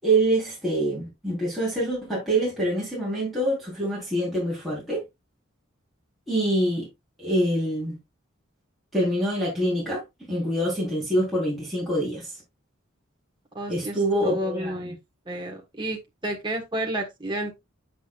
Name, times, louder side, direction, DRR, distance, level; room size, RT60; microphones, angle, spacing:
voice 1, 0.0-5.0 6.3-6.9 7.2-8.0 8.9-12.3 13.7-14.7, right 1 dB, ahead, 4.0 m, -25 dB
voice 2, 13.5-15.0 15.3-17.6, right 1 dB, 25° right, 1.5 m, -31 dB
8.0 x 6.5 x 2.4 m
head